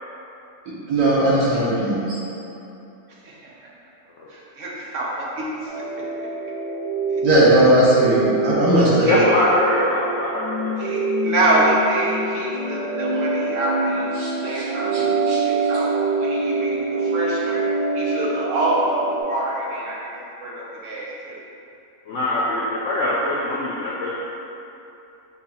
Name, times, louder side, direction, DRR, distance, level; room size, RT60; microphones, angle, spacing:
voice 1, 0.9-2.2 7.2-9.2 14.2-14.6 14.9-15.4, right 1 dB, 75° right, -8 dB, 1.7 m, -18 dB
voice 2, 3.2-3.7 4.3-5.7 7.1-7.2 9.0-9.3 10.8-15.9 16.2-17.6 17.9-20.1 20.4-21.4, right 1 dB, 60° right, -5 dB, 0.9 m, -26 dB
sound 1, 5.7-19.2, right 3 dB, 30° left, 0.8 m, -25 dB
voice 3, 9.1-10.7 22.1-24.2, left 1 dB, 75° left, -5 dB, 0.6 m, -22 dB
5.4 x 2.3 x 4.0 m, 2.9 s
omnidirectional pair, 1.8 m